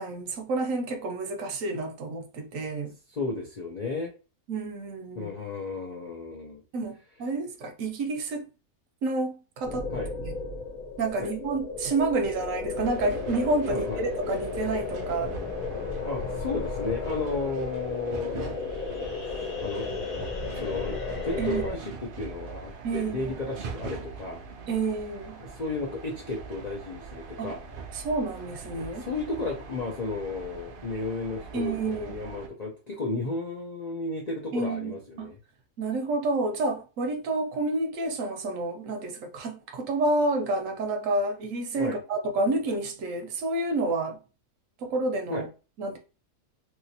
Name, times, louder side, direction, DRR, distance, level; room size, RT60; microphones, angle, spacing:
voice 1, 0.0-2.9 4.5-5.3 6.7-8.5 9.0-9.9 10.2-10.3 11.0-15.4 21.4-21.7 22.8-23.3 24.7-25.4 27.4-27.5 27.9-29.1 31.5-32.3 34.5-35.3 35.8-44.2 44.8-45.5 45.8-46.0, right 2 dB, 70° right, 0.9 m, -29 dB
voice 2, 3.1-4.1 5.1-6.6 9.9-10.1 11.2-11.3 13.7-14.0 16.1-19.1 19.4-19.9 20.6-24.4 25.4-27.6 29.0-35.4 41.8-42.0 45.3-45.4, left 3 dB, 55° left, 0.4 m, -33 dB
sound 1, 9.6-21.7, left 4 dB, 70° left, 1.2 m, -34 dB
sound 2, 12.7-32.5, right 4 dB, 85° right, 0.4 m, -42 dB
3.0 x 2.8 x 2.7 m
omnidirectional pair, 1.6 m